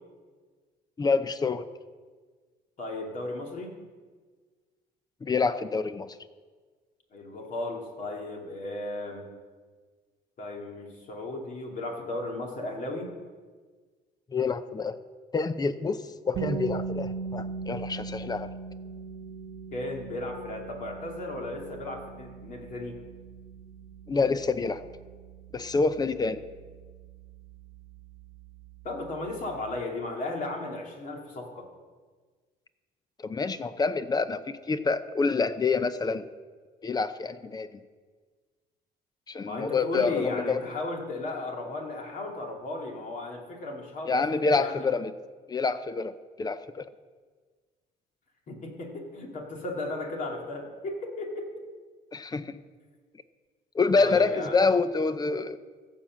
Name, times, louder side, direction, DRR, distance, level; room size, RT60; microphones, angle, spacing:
voice 1, 1.0-1.6 5.2-6.1 14.3-15.0 15.3-16.0 16.3-18.5 24.1-24.8 25.5-26.4 33.2-36.2 36.8-37.7 39.3-40.6 44.1-45.1 45.5-46.1 46.4-46.8 52.1-52.6 53.7-55.6, left 4 dB, 25° left, 13 dB, 0.7 m, -27 dB
voice 2, 2.8-3.8 7.1-9.3 10.4-13.1 19.7-23.0 28.8-31.7 39.4-44.9 48.5-51.6 53.9-54.6, left 2 dB, 50° left, 1 dB, 2.5 m, -35 dB
sound 1, 16.3-28.2, right 5 dB, 75° right, 1.1 m, -39 dB
15.5 x 5.7 x 7.6 m, 1.5 s
cardioid pair, 110°, 17 cm